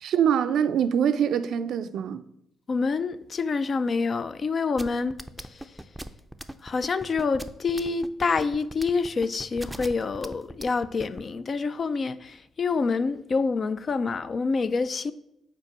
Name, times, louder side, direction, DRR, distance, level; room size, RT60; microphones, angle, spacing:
voice 1, 0.0-2.2, right 8 dB, 65° right, 0.4 m, -24 dB
voice 2, 2.7-5.5 6.6-15.1, left 4 dB, 45° left, 0.4 m, -27 dB
sound 1, 4.8-11.2, right 1 dB, 5° right, 0.5 m, -38 dB
5.2 x 4.4 x 5.5 m
hypercardioid pair, 45°, 0 cm